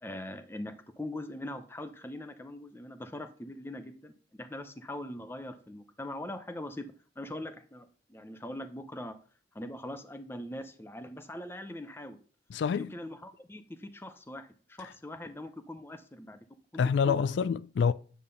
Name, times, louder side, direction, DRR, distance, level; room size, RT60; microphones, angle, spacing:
voice 1, 0.0-4.1 4.4-6.9 7.2-9.2 9.5-12.2 12.8-16.4 16.7-17.2, left 1 dB, 15° left, 0.7 m, -42 dB
voice 2, 12.5-12.9 14.8-14.9 16.8-17.9, left 6 dB, 75° left, 0.3 m, -27 dB
9.7 x 3.5 x 6.8 m
head